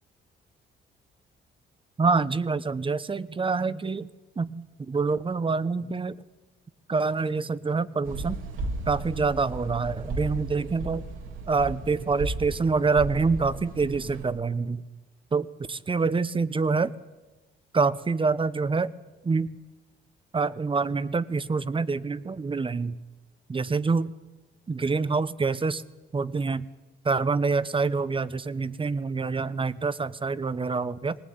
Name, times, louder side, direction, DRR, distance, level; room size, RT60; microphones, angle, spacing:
voice 1, 2.0-4.1 4.4-6.2 6.9-8.4 8.9-11.0 11.5-14.8 15.3-16.9 17.7-18.9 19.2-19.5 20.3-23.0 23.5-24.1 24.7-25.8 26.1-26.7 27.0-31.2, right 4 dB, 25° right, 16 dB, 1.0 m, -26 dB
sound 1, 8.0-14.2, right 2 dB, 85° right, 3.1 m, -35 dB
19.5 x 19.5 x 9.4 m, 1.2 s
cardioid pair, 90°, 20 cm